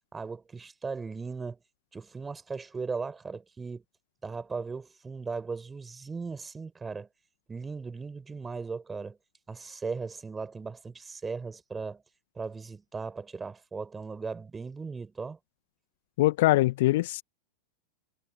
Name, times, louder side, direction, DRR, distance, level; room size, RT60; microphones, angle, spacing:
voice 1, 0.1-1.6 1.9-3.8 4.2-7.1 7.5-9.2 9.5-12.0 12.3-15.4, right 4 dB, 15° right, 4.7 m, -37 dB
voice 2, 16.2-17.2, left 18 dB, 50° left, 1.8 m, -23 dB
figure-of-eight pair, 90°, 0 cm